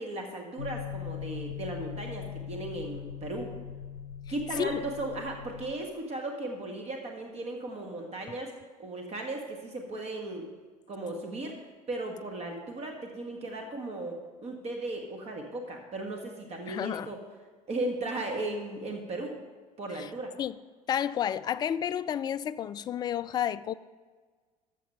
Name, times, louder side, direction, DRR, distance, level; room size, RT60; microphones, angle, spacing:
voice 1, 0.0-3.5 4.3-8.5 8.8-10.5 10.9-11.6 11.9-17.2 17.7-19.4 19.8-20.3, right 2 dB, 35° right, 1.5 m, -36 dB
sound 1, 0.6-5.7, left 8 dB, 80° left, 0.5 m, -40 dB
voice 2, 16.7-17.1 20.0-20.1 20.4-20.5 20.9-23.7, left 9 dB, 20° left, 0.3 m, -31 dB
14.0 x 6.0 x 5.4 m
figure-of-eight pair, 65°, 20 cm